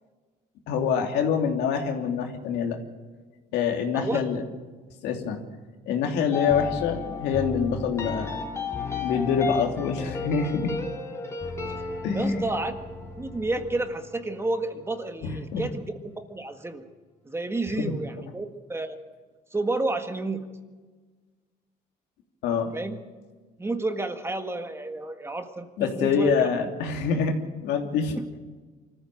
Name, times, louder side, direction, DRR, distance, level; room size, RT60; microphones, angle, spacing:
voice 1, 0.7-2.8 3.5-4.4 5.0-5.4 5.9-8.4 9.0-10.7 12.0-12.4 15.2-15.6 17.8-17.9 22.4-22.7 25.8-27.4 27.6-28.2, left 6 dB, 85° left, 3 dB, 3.0 m, -25 dB
sound 1, 6.3-15.5, left 4 dB, 15° left, 3.5 m, -34 dB
voice 2, 12.1-12.7 13.2-15.8 16.3-16.8 17.2-19.0 19.5-20.6 22.7-23.0 23.6-26.7 28.1-28.3, right 2 dB, 15° right, 7 dB, 1.8 m, -30 dB
25.0 x 14.5 x 7.8 m, 1.4 s
cardioid pair, 110°, 17 cm